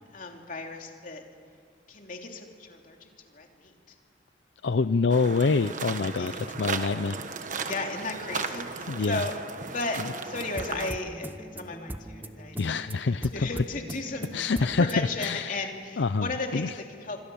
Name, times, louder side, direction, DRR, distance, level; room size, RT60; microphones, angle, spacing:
voice 1, 0.1-1.2 1.9-3.7 6.1-6.3 7.6-9.4 9.7-12.7 13.3-14.3 14.6-17.2, left 3 dB, 50° left, 2 dB, 3.1 m, -35 dB
voice 2, 4.6-7.5 8.9-9.3 10.0-10.1 12.6-13.6 14.3-15.7 16.0-16.7, left 4 dB, 75° left, 12 dB, 0.6 m, -26 dB
sound 1, 5.1-10.9, right 5 dB, 45° right, 1.3 m, -36 dB
sound 2, 10.3-15.4, right 1 dB, 10° right, 0.8 m, -41 dB
28.0 x 25.0 x 7.1 m, 2.2 s
head